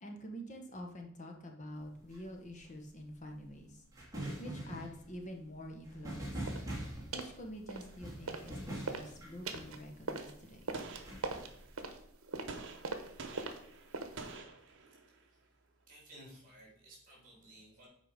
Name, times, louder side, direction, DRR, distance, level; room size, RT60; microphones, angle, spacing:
voice 1, 0.0-3.8 4.4-6.5 7.1-10.7, equal, 35° left, 2 dB, 1.1 m, -47 dB
sound 1, 1.7-10.1 10.8-12.0, right 1 dB, 15° right, 2.7 m, -44 dB
sound 2, 6.5-6.7 7.1-7.4 7.7-8.5 8.8-14.4, right 3 dB, 75° right, 1.0 m, -42 dB
Gunshot gunfire, 10.7-11.8 12.5-15.3, right 3 dB, 55° right, 1.0 m, -49 dB
voice 2, 14.6-15.5 15.8-17.9, right 1 dB, 40° right, -3 dB, 3.5 m, -57 dB
7.8 x 4.9 x 5.1 m, 0.71 s
head